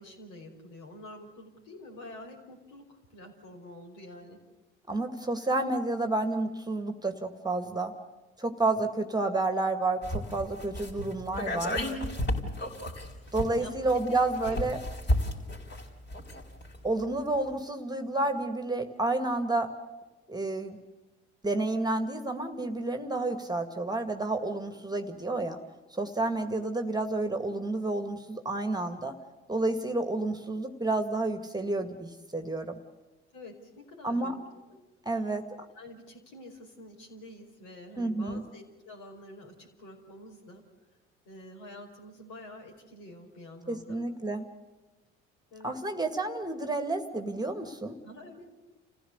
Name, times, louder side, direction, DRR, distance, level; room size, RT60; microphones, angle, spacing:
voice 1, 0.0-4.4 13.2-14.6 15.4-15.5 33.3-34.4 34.7-34.8 35.7-40.6 41.2-44.0 45.5-45.7 48.0-48.5, left 1 dB, 65° left, 1 dB, 5.2 m, -48 dB
voice 2, 4.9-7.9 8.4-11.8 13.3-14.8 16.8-19.7 20.3-20.8 21.4-25.6 25.9-29.1 29.5-32.7 34.0-34.3 35.1-35.5 38.0-38.4 43.7-44.5 45.6-48.0, right 2 dB, 10° right, 7 dB, 2.1 m, -30 dB
sound 1, 10.0-16.8 17.0-17.1, left 1 dB, 30° left, 4.6 m, -33 dB
29.0 x 15.5 x 8.2 m, 1.2 s
hypercardioid pair, 60°, 34 cm